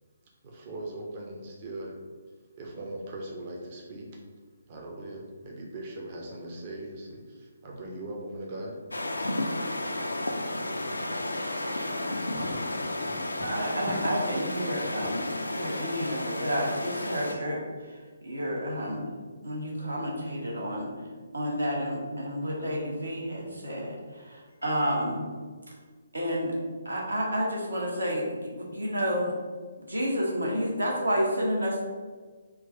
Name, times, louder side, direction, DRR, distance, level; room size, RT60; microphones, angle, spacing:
voice 1, 0.4-1.9 2.6-4.1 4.7-8.8, right 1 dB, 35° right, -1 dB, 0.7 m, -39 dB
sound 1, 8.9-17.3, left 1 dB, 75° left, 0.4 m, -32 dB
voice 2, 9.4-13.5 13.9-14.0 14.8-15.1, left 2 dB, 15° left, -1 dB, 0.5 m, -45 dB
voice 3, 13.4-18.0 18.2-19.2 19.4-20.9 21.3-25.3 26.1-26.6 26.8-29.3 29.8-31.8, equal, 75° right, -3 dB, 1.2 m, -30 dB
3.8 x 2.4 x 4.6 m, 1.5 s
figure-of-eight pair, 135°, 0 cm